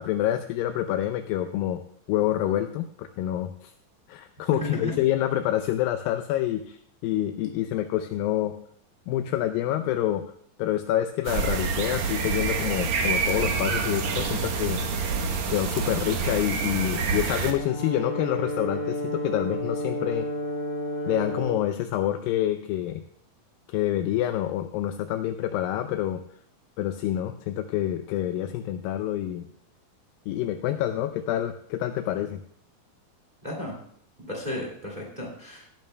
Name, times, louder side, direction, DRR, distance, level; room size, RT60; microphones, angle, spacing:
voice 1, 0.0-1.8 2.1-3.7 4.1-8.6 9.1-10.2 10.6-14.8 15.5-20.3 21.1-23.0 23.7-26.2 26.8-29.5 30.3-32.4, left 12 dB, 80° left, 7 dB, 2.2 m, -27 dB
voice 2, 4.5-4.9 33.4-33.7 34.3-35.7, left 1 dB, 20° right, -1 dB, 1.3 m, -33 dB
sound 1, 11.2-17.5, right 5 dB, 65° right, 1.8 m, -27 dB
Brass instrument, 17.5-21.6, left 1 dB, 55° left, 0.4 m, -31 dB
18.0 x 10.5 x 2.2 m, 0.63 s
omnidirectional pair, 4.3 m